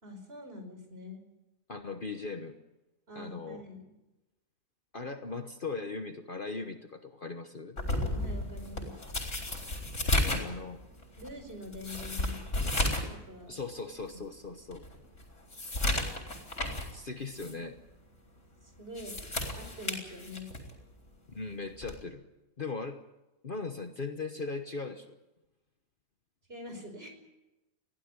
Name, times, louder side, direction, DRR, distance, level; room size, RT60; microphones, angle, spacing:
voice 1, 0.0-1.2 3.1-3.9 8.0-8.9 11.2-12.4 13.1-13.6 14.1-14.2 18.6-19.2 19.6-20.5 26.5-27.1, left 2 dB, 45° right, 5 dB, 5.4 m, -45 dB
voice 2, 1.7-2.6 3.1-3.6 4.9-7.8 10.2-10.8 13.5-14.8 16.9-17.8 21.3-22.2 22.6-23.0 23.4-25.1, left 4 dB, 40° left, 7 dB, 1.3 m, -39 dB
sound 1, 7.8-13.2 13.5-13.6 14.2-14.3 14.7-16.9 17.3-17.5 18.8-20.7 21.8-22.0, left 1 dB, 60° left, 4.7 m, -33 dB
21.5 x 15.5 x 9.7 m, 0.99 s
omnidirectional pair, 1.4 m